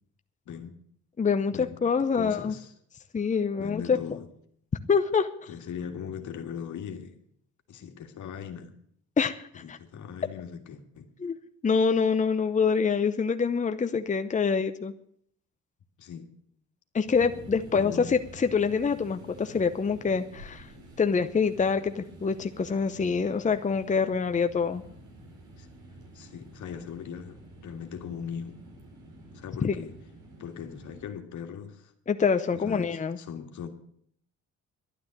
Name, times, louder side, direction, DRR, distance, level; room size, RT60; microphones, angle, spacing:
voice 1, 0.5-0.8 1.5-1.8 2.1-2.7 3.6-4.3 5.5-7.2 7.7-8.7 9.5-11.1 16.0-16.3 17.7-18.1 25.6-25.7 26.1-28.6 29.3-30.0 30.4-31.9 32.5-33.7, left 7 dB, 75° left, 1.9 m, -39 dB
voice 2, 1.2-2.5 3.1-4.0 4.9-5.3 9.2-9.8 11.2-11.4 11.6-14.9 16.9-20.7 21.0-24.8 29.6-29.7 32.1-33.2, left 5 dB, 25° left, 0.8 m, -25 dB
sound 1, 17.0-31.0, right 1 dB, 75° right, 4.4 m, -49 dB
12.0 x 9.4 x 9.1 m
cardioid pair, 90°, 30 cm